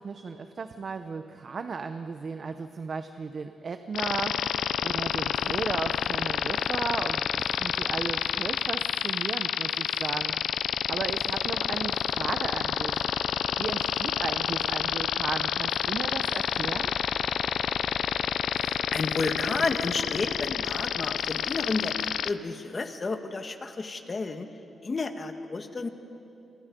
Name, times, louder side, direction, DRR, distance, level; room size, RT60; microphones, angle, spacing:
voice 1, 0.0-10.4 10.9-13.0 13.6-17.0, right 5 dB, 45° right, 8 dB, 0.9 m, -35 dB
sound 1, 3.9-22.3, left 9 dB, 90° left, 0.6 m, -28 dB
voice 2, 18.5-24.5 24.8-25.9, left 3 dB, 30° left, 7 dB, 1.6 m, -31 dB
29.5 x 28.0 x 5.3 m, 2.8 s
wide cardioid pair, 135°, 0 cm